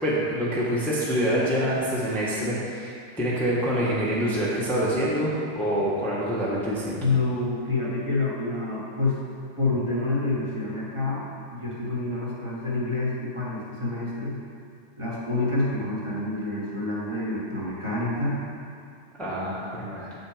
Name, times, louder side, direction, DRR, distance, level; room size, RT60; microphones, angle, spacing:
voice 1, 0.0-7.0 19.2-20.1, equal, ahead, -7 dB, 1.1 m, -26 dB
voice 2, 7.0-9.2 9.6-14.4 15.0-18.4, left 2 dB, 20° right, -6 dB, 1.3 m, -27 dB
8.2 x 6.6 x 5.0 m, 2.3 s
omnidirectional pair, 1.8 m